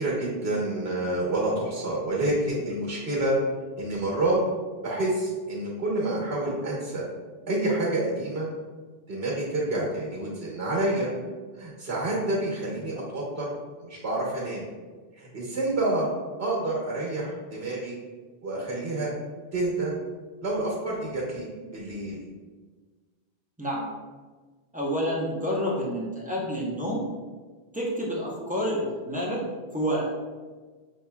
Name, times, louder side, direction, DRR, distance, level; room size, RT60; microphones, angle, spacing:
voice 1, 0.0-3.4 3.8-4.4 4.8-7.0 7.5-8.5 9.1-11.1 11.6-13.5 13.8-14.6 15.1-16.1 16.4-18.0 18.4-19.1 19.5-19.9 20.4-22.2, right 2 dB, 90° right, -3 dB, 1.4 m, -28 dB
voice 2, 23.6-23.9 24.7-27.0 27.7-29.4 29.7-30.1, equal, 10° right, -5 dB, 0.6 m, -28 dB
6.0 x 2.9 x 2.3 m, 1.4 s
omnidirectional pair, 1.0 m